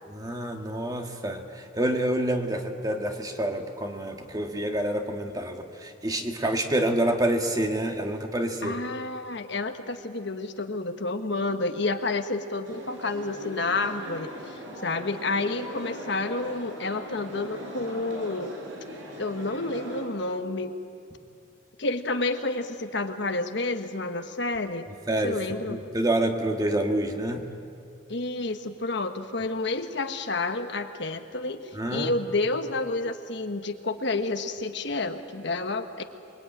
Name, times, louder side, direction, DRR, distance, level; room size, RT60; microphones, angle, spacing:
voice 1, 0.1-8.8 25.1-25.4 25.7-27.4 31.7-32.1, right 1 dB, 20° right, 3 dB, 1.8 m, -27 dB
voice 2, 8.6-18.5 19.2-20.7 21.8-24.9 25.2-25.8 28.1-36.0, left 2 dB, 60° left, 7 dB, 1.3 m, -30 dB
sound 1, 12.6-20.0, equal, 80° right, 5.5 m, -40 dB
28.0 x 22.0 x 9.1 m, 2.6 s
head